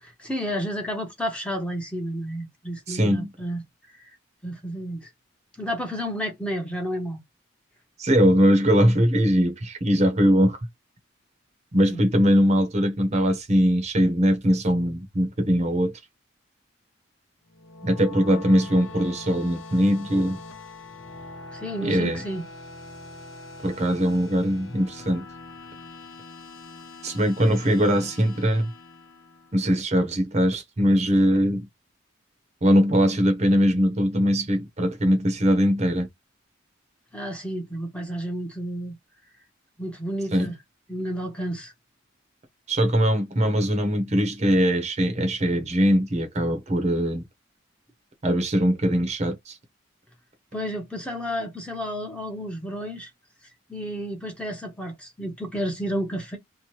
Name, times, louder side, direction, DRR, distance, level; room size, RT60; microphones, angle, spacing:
voice 1, 0.0-3.6 4.4-5.1 5.6-7.2 11.9-12.0 21.5-22.4 37.1-39.0 39.8-40.6 40.9-41.7 50.5-53.1 53.7-56.4, equal, 5° left, 0.7 m, -31 dB
voice 2, 2.9-3.3 8.0-10.6 11.7-15.9 17.8-20.4 21.8-22.2 23.6-25.2 27.0-28.7 29.5-31.7 32.6-36.1 40.3-40.5 42.7-47.2 48.2-49.6, equal, 35° right, 0.7 m, -21 dB
sound 1, 17.5-29.8, left 3 dB, 90° left, 0.7 m, -43 dB
2.8 x 2.1 x 3.0 m
head